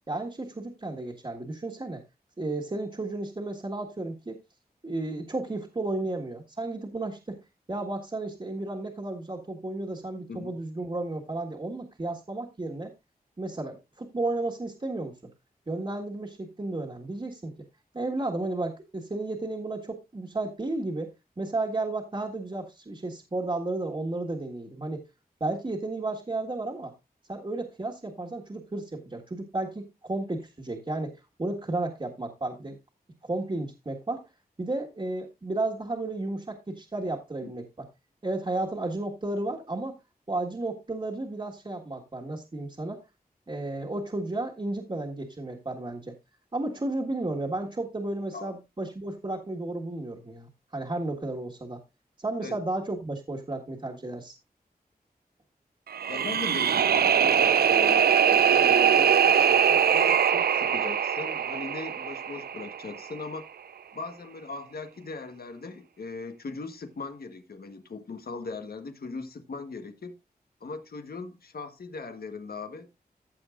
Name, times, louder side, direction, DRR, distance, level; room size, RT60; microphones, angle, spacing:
voice 1, 0.1-2.0 2.4-4.4 4.8-7.4 7.7-12.9 13.4-15.2 15.7-17.5 17.9-25.0 25.4-26.9 27.3-32.8 33.2-34.3 34.6-37.9 38.2-39.9 40.3-43.0 43.5-46.2 46.5-51.8 52.2-54.3, right 2 dB, 35° right, 1.7 m, -33 dB
sound 1, 55.9-63.0, right 8 dB, 80° right, 0.4 m, -22 dB
voice 2, 56.1-63.4 63.9-70.1 70.6-72.9, left 4 dB, 80° left, 1.4 m, -39 dB
15.0 x 7.3 x 2.5 m
wide cardioid pair, 60°, 16 cm